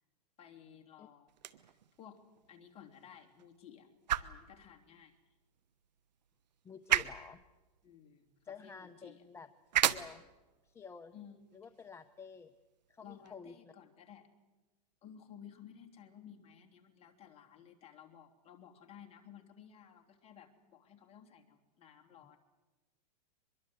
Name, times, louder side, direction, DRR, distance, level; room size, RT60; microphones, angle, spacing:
voice 1, 0.4-2.2 2.5-3.9 4.2-5.2 7.8-9.2 11.1-11.4 13.0-14.3 15.0-22.4, left 8 dB, 30° left, 3 dB, 3.2 m, -56 dB
sound 1, 1.3-13.3, right 11 dB, 90° right, 1.2 m, -39 dB
voice 2, 6.6-7.4 8.4-9.5 9.9-10.2 10.6-11.1 11.5-12.6 12.9-13.7, left 5 dB, 10° left, 9 dB, 0.8 m, -50 dB
24.0 x 22.5 x 8.0 m, 1.2 s
supercardioid pair, 135°, 21 cm